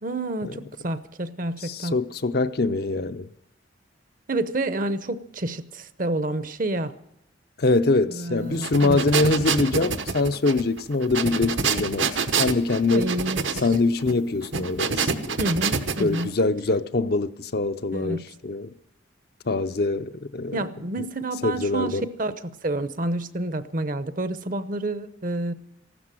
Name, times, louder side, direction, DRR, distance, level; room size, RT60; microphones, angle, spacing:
voice 1, 0.0-2.0 4.3-6.9 8.1-9.0 12.9-13.6 15.4-16.4 17.9-18.2 20.5-25.5, right 2 dB, 45° right, 0.8 m, -29 dB
voice 2, 1.6-3.3 7.6-12.1 12.4-13.1 13.6-15.4 16.0-18.7 19.5-20.6 21.4-22.1, left 3 dB, 50° left, 0.6 m, -24 dB
sound 1, 8.5-16.3, right 5 dB, 70° right, 1.2 m, -27 dB
15.0 x 12.5 x 7.6 m
head